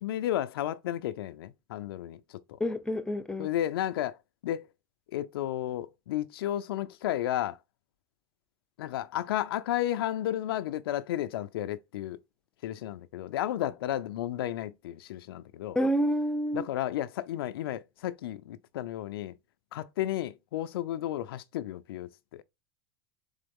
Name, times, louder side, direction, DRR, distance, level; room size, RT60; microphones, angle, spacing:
voice 1, 0.0-2.4 3.4-4.2 4.4-4.7 5.1-7.6 8.8-12.2 12.6-15.8 16.5-19.3 19.7-22.4, left 12 dB, 80° left, 0.4 m, -33 dB
voice 2, 2.6-3.5 15.7-16.7, equal, 5° left, 0.6 m, -28 dB
3.9 x 3.5 x 3.5 m
hypercardioid pair, 105°, 12 cm